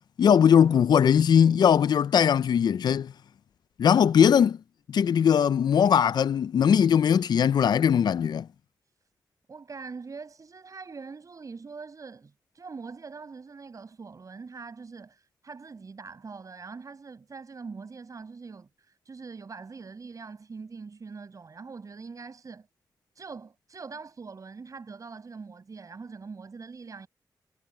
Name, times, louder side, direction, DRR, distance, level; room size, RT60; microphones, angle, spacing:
voice 1, 0.2-3.1 3.8-4.6 4.9-8.5, left 8 dB, 70° left, 0.4 m, -20 dB
voice 2, 9.5-22.7 23.1-27.1, right 4 dB, 50° right, 5.9 m, -43 dB
cardioid pair, 85°, 7 cm